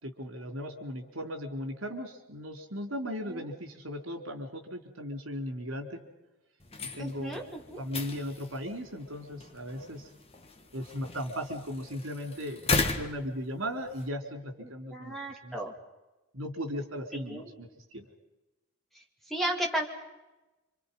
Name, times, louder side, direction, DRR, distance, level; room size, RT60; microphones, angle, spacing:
voice 1, 0.0-6.0 6.9-7.4 7.8-10.1 10.7-15.2 15.4-15.6 16.3-17.7 17.9-18.1, equal, 70° right, 5 dB, 4.0 m, -37 dB
sound 1, 6.6-14.1, left 3 dB, 30° left, 1.6 m, -36 dB
voice 2, 7.0-7.8 14.6-15.7 17.1-17.5 18.9-19.9, right 1 dB, ahead, 1 dB, 2.7 m, -35 dB
28.5 x 26.5 x 5.5 m, 1.0 s
head